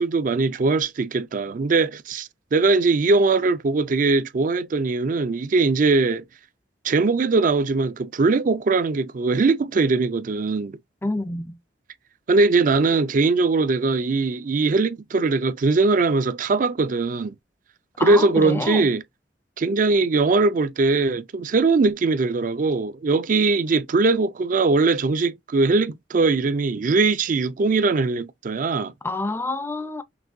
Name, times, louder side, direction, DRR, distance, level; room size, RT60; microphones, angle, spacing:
voice 1, 0.0-6.2 6.8-10.8 12.3-17.3 18.0-19.0 19.6-28.9, right 3 dB, 45° right, 0.4 m, -21 dB
voice 2, 11.0-11.6 18.0-18.9 29.0-30.0, left 2 dB, 15° left, 0.5 m, -27 dB
6.0 x 2.6 x 2.6 m
head